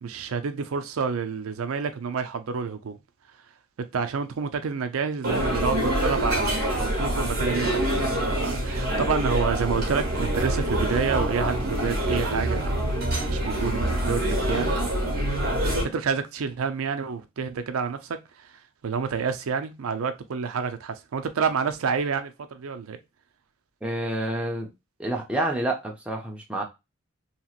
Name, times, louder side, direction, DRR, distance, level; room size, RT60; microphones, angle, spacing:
voice 1, 0.0-3.0 3.8-12.7 13.3-14.8 15.8-23.0, right 6 dB, 85° right, 0.4 m, -29 dB
sound 1, 5.2-15.8, right 1 dB, 45° right, 1.2 m, -25 dB
voice 2, 23.8-24.7 25.0-26.6, right 1 dB, 5° right, 0.6 m, -28 dB
2.9 x 2.9 x 2.3 m
head